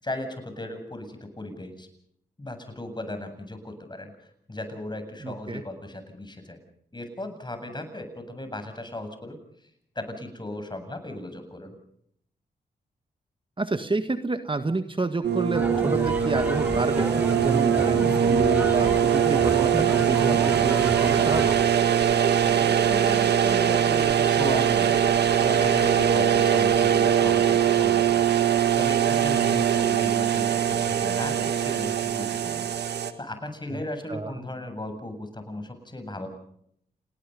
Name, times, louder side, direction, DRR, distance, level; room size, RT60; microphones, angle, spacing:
voice 1, 0.0-1.9 2.4-6.6 6.9-9.4 9.9-11.8 22.2-25.0 25.4-32.7 33.2-36.3, left 1 dB, 25° left, 7 dB, 7.9 m, -36 dB
voice 2, 5.2-5.6 13.6-17.1 17.4-21.6 33.7-33.8 34.1-34.3, right 3 dB, 30° right, 9 dB, 1.7 m, -29 dB
sound 1, 15.2-33.1, right 8 dB, 75° right, 1.8 m, -22 dB
sound 2, 15.5-21.6, right 1 dB, 10° right, 5.6 m, -31 dB
30.0 x 19.5 x 5.4 m, 0.70 s
supercardioid pair, 45°, 17 cm